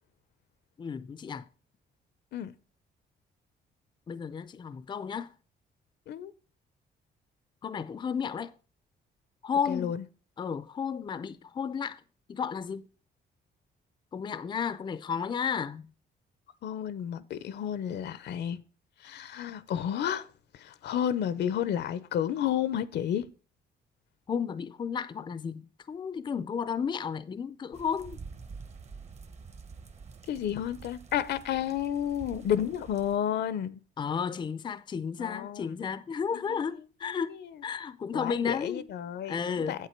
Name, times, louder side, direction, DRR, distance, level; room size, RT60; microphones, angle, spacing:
voice 1, 0.8-1.5 4.1-5.3 7.6-8.5 9.4-9.9 10.4-12.0 12.3-12.9 14.1-15.9 24.3-28.2 34.0-37.3 37.6-38.9 39.3-39.8, left 6 dB, 25° left, 0.4 m, -33 dB
voice 2, 9.7-10.0 16.6-18.6 19.0-20.3 20.5-23.3 30.3-33.8 35.2-35.8 36.3-37.6 38.1-39.9, left 10 dB, 75° left, 0.7 m, -32 dB
sound 1, 27.7-33.2, right 4 dB, 40° right, 1.0 m, -47 dB
8.3 x 8.1 x 4.5 m
cardioid pair, 145°, 18 cm